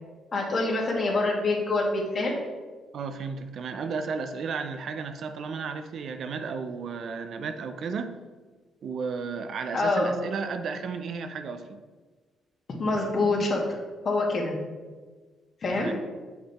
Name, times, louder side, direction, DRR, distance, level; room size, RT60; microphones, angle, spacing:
voice 1, 0.3-2.3 9.7-10.2 12.8-13.6 14.0-14.5 15.6-15.9, left 2 dB, 50° left, -1 dB, 2.1 m, -25 dB
voice 2, 2.9-8.2 8.8-11.8 15.7-15.9, right 5 dB, 65° right, 8 dB, 0.6 m, -33 dB
7.8 x 5.9 x 4.3 m, 1.4 s
cardioid pair, 90°, 0 cm